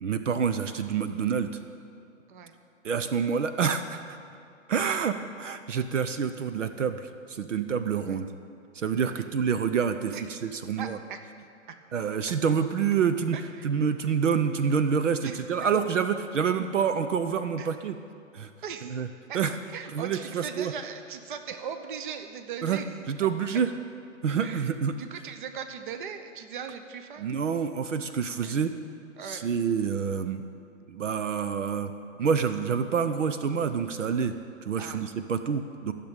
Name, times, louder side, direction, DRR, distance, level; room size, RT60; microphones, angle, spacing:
voice 1, 0.0-1.5 2.8-4.2 4.7-8.3 8.7-11.0 11.9-13.4 13.6-18.0 18.3-18.5 18.8-19.1 19.3-19.5 19.9-20.7 22.6-22.8 23.1-23.7 24.2-24.9 27.2-28.7 29.2-30.4 30.9-31.9 32.2-34.3 34.6-35.9, right 6 dB, 70° right, 9 dB, 0.8 m, -27 dB
voice 2, 10.8-11.2 11.7-11.8 13.3-13.7 15.2-15.4 17.6-17.7 18.6-19.0 19.3-19.4 19.7-22.8 24.4-27.3 28.4-28.6 29.2-29.5 34.8-35.1, right 7 dB, 40° right, 8 dB, 1.0 m, -39 dB
14.0 x 6.9 x 8.8 m, 2.6 s
hypercardioid pair, 150°, 39 cm